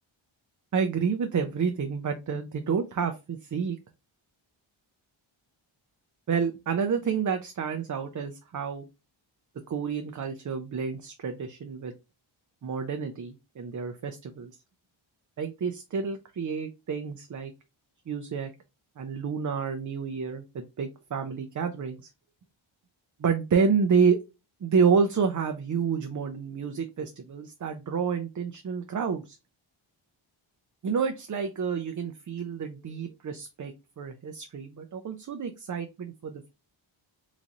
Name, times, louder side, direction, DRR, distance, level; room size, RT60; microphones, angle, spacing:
voice 1, 0.7-3.8 6.3-8.9 9.7-11.9 12.6-14.5 15.4-17.5 18.1-18.5 19.0-22.1 23.2-24.2 24.6-29.4 30.8-36.5, right 6 dB, 40° right, 6 dB, 0.5 m, -29 dB
4.0 x 3.1 x 2.4 m, 0.25 s
wide cardioid pair, 130°, 49 cm